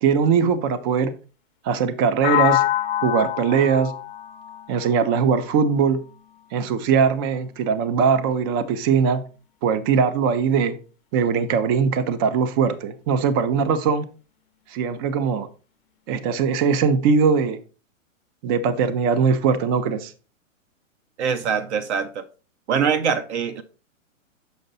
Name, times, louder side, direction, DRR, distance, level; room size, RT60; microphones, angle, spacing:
voice 1, 0.0-1.1 1.6-2.6 3.0-3.9 4.7-6.0 6.5-9.2 9.6-10.7 11.1-14.0 14.7-15.5 16.1-17.6 18.4-20.1, right 6 dB, 20° right, 0.4 m, -20 dB
sound 1, 2.2-6.1, left 13 dB, 45° left, 0.7 m, -25 dB
voice 2, 21.2-22.2 22.7-23.6, right 6 dB, 60° right, 0.8 m, -23 dB
6.7 x 5.3 x 3.9 m
hypercardioid pair, 130°, 39 cm